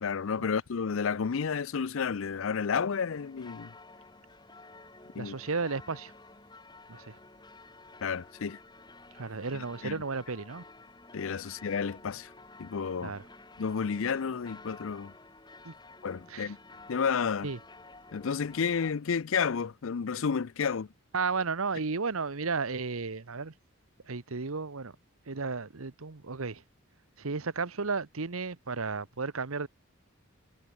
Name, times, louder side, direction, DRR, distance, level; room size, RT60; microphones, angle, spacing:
voice 1, 0.0-3.7 5.1-5.4 8.0-8.6 9.5-9.9 11.1-12.3 12.6-13.1 13.6-15.1 16.0-16.6 16.9-17.5 18.1-20.9, left 6 dB, 70° left, 0.5 m, -31 dB
sound 1, 3.1-18.9, left 3 dB, 20° left, 4.4 m, -52 dB
voice 2, 5.1-6.1 6.9-7.2 9.2-10.6 13.0-13.2 15.6-15.7 16.3-16.5 17.4-17.6 21.1-23.5 24.1-25.0 25.3-26.6 27.2-29.7, right 4 dB, 80° right, 1.1 m, -33 dB
head